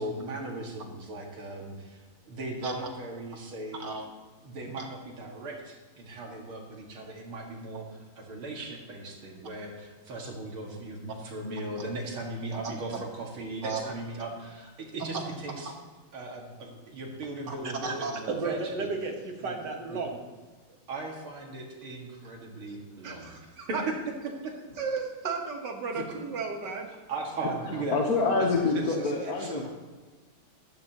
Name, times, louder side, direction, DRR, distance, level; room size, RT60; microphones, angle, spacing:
voice 1, 0.0-4.0 4.4-15.7 16.1-18.9 19.4-19.6 19.9-20.0 20.9-23.3 23.6-24.5 25.9-26.1 27.1-28.0 28.4-28.5 28.7-29.6, right 2 dB, 90° right, -1 dB, 2.9 m, -38 dB
voice 2, 12.5-13.0 13.6-13.8 15.0-15.2 15.6-15.7 17.5-20.3 23.0-23.8 24.8-26.9, right 4 dB, 60° right, 2 dB, 1.9 m, -34 dB
voice 3, 27.4-29.7, left 3 dB, 50° left, 1 dB, 1.4 m, -27 dB
15.0 x 12.5 x 3.0 m, 1.3 s
omnidirectional pair, 2.2 m